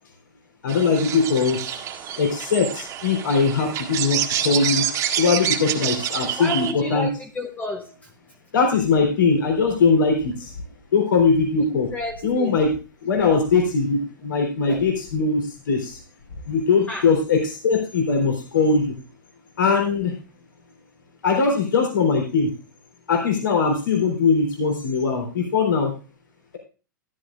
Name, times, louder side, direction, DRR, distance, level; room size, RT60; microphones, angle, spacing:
voice 1, 0.6-1.6 2.2-4.8 5.2-7.1 8.5-10.5 10.9-11.9 12.2-12.7 13.0-16.0 16.5-18.9 19.6-20.1 21.2-22.5 23.1-25.9, left 4 dB, 75° left, 2 dB, 3.6 m, -21 dB
sound 1, 0.7-6.7, right 9 dB, 30° right, 1.9 m, -27 dB
voice 2, 6.4-8.1 11.6-12.6 14.7-14.8 16.9-17.1, left 2 dB, 15° left, 4 dB, 1.1 m, -31 dB
13.5 x 11.5 x 2.5 m, 0.34 s
hypercardioid pair, 120°, 11 cm